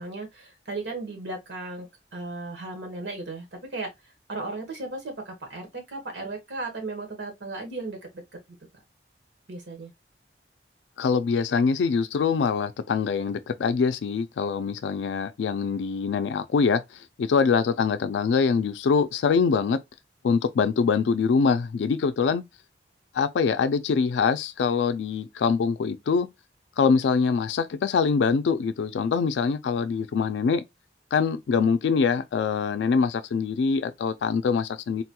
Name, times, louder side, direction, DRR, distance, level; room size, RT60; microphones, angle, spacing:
voice 1, 0.0-3.5 3.7-3.9 4.3-8.0 9.5-9.9, right 2 dB, 90° right, 1.2 m, -35 dB
voice 2, 11.0-19.8 20.2-22.4 23.1-26.3 26.8-30.6 31.1-35.0, left 5 dB, 85° left, 0.3 m, -24 dB
3.9 x 2.2 x 2.8 m
head